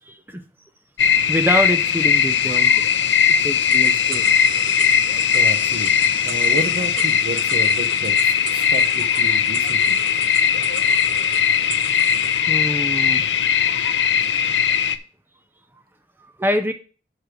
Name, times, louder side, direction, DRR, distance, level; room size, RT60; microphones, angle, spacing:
voice 1, 0.1-0.4 1.2-2.8 3.4-4.2 12.5-13.4 16.4-16.7, equal, 10° right, 7 dB, 0.6 m, -25 dB
sound 1, 1.0-15.0, left 7 dB, 80° left, 0.6 m, -19 dB
sound 2, 3.7-12.4, right 6 dB, 80° right, 1.0 m, -37 dB
voice 2, 5.3-10.0, right 2 dB, 55° right, 7 dB, 1.1 m, -31 dB
6.6 x 6.5 x 4.9 m, 0.38 s
head